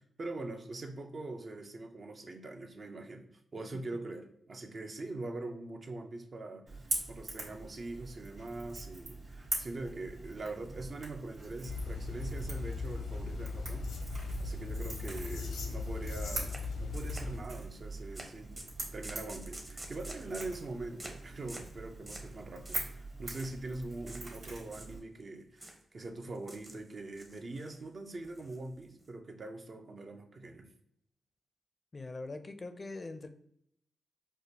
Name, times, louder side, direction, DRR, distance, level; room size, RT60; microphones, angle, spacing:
voice 1, 0.0-3.3 3.5-13.9 14.4-18.5 18.9-30.7, right 2 dB, 50° right, 4 dB, 0.5 m, -43 dB
Crackle / Crack, 6.7-25.0, right 2 dB, 75° right, 1.4 m, -43 dB
sound 1, 11.6-17.4, left 4 dB, 85° left, 0.6 m, -38 dB
sound 2, 16.5-16.6 16.9-17.6 18.1-18.3 18.6-20.6 21.0-21.2 21.5-21.7 22.1-22.3 22.7-22.9 23.2-23.5 24.1-24.2 24.6-25.2 25.6-25.8 26.3-26.8 27.1-27.8 28.2-29.0, right 1 dB, 30° right, 0.8 m, -48 dB
voice 2, 31.9-33.3, left 3 dB, 40° left, 8 dB, 0.4 m, -42 dB
4.8 x 2.1 x 2.8 m, 0.71 s
cardioid pair, 55°, 0 cm